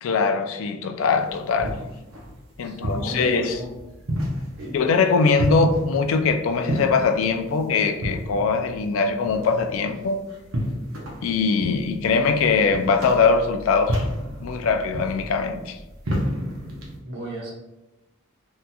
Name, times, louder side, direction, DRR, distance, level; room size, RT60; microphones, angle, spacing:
voice 1, 0.0-1.8 2.6-3.6 4.7-10.2 11.2-14.1 14.4-15.8, left 4 dB, 75° left, 8 dB, 0.3 m, -22 dB
sound 1, 1.1-17.0, equal, 75° right, 0.7 m, -32 dB
voice 2, 2.6-3.7 4.6-4.8 17.0-17.5, right 1 dB, 55° right, -4 dB, 1.0 m, -34 dB
3.6 x 2.7 x 2.2 m, 1.0 s
head